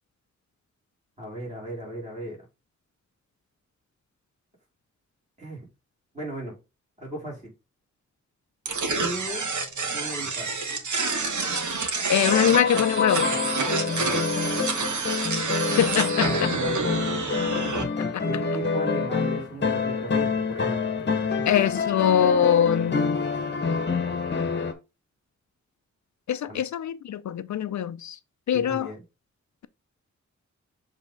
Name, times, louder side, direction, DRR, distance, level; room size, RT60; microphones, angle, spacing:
voice 1, 1.2-2.4 5.4-5.6 6.1-6.5 7.0-7.5 8.9-9.5 9.9-10.5 13.9-14.4 16.1-17.2 17.7-20.8 21.2-21.5 26.5-26.6 28.5-29.0, right 1 dB, 25° right, 4.2 m, -36 dB
sound 1, 8.7-17.8, right 4 dB, 85° right, 1.5 m, -28 dB
voice 2, 12.1-13.3 15.8-16.5 18.1-18.2 21.5-23.2 26.3-28.2 28.5-28.9, left 9 dB, 75° left, 0.5 m, -23 dB
sound 2, 12.2-24.7, left 5 dB, 35° left, 1.0 m, -27 dB
7.3 x 3.5 x 3.8 m
wide cardioid pair, 130°, 29 cm